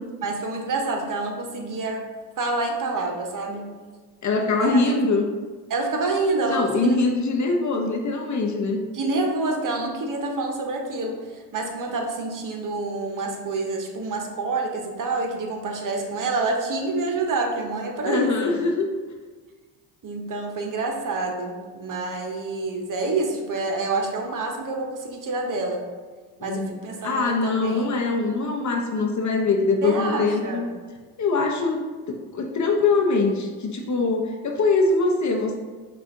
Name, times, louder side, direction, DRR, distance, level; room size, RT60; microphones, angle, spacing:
voice 1, 0.2-2.0 2.4-3.6 4.6-4.7 5.7-7.0 8.9-18.5 20.0-25.8 26.4-27.9 29.8-30.7, right 3 dB, 40° right, 2 dB, 0.9 m, -27 dB
voice 2, 4.2-5.2 6.5-8.8 18.0-18.9 26.4-26.7 27.0-30.7 31.2-35.6, left 3 dB, 40° left, 2 dB, 0.7 m, -23 dB
5.4 x 2.5 x 3.6 m, 1.4 s
hypercardioid pair, 55°, 47 cm